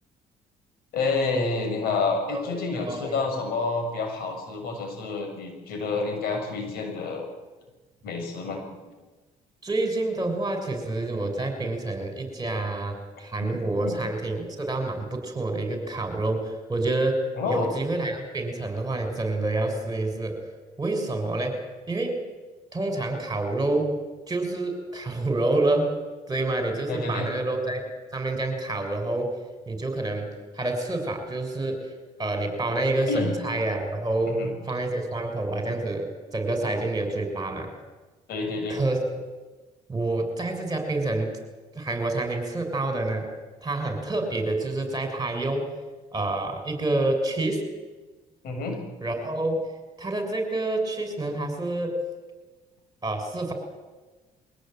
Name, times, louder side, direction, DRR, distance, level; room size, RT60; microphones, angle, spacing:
voice 1, 0.9-7.3 8.0-8.6 13.4-14.0 17.4-17.7 26.9-27.3 33.1-33.4 34.3-34.5 38.3-38.8 48.4-48.8, left 3 dB, 75° left, 4 dB, 6.6 m, -29 dB
voice 2, 2.3-3.3 9.6-20.4 20.8-22.2 22.7-24.0 24.3-26.0 26.3-29.4 29.7-30.3 30.5-31.8 32.2-37.7 38.7-39.0 39.9-41.4 41.7-43.3 43.6-45.7 46.1-47.6 49.0-49.7 50.0-52.0 53.0-53.5, right 2 dB, 25° right, 5 dB, 6.6 m, -28 dB
23.5 x 17.5 x 9.3 m, 1.2 s
supercardioid pair, 80°, 16 cm